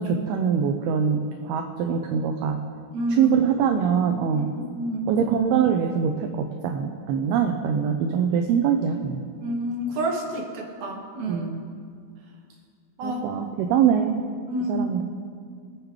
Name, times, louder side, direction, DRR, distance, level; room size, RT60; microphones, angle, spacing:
voice 1, 0.0-2.6 3.1-4.5 5.1-9.2 11.3-11.6 13.0-14.2 14.7-15.0, right 7 dB, 80° right, 4 dB, 2.4 m, -23 dB
voice 2, 2.9-3.3 4.3-5.1 9.4-11.5 13.0-13.2 14.5-14.8, equal, 50° right, -1 dB, 3.1 m, -29 dB
29.5 x 9.9 x 3.2 m, 2.2 s
omnidirectional pair, 5.0 m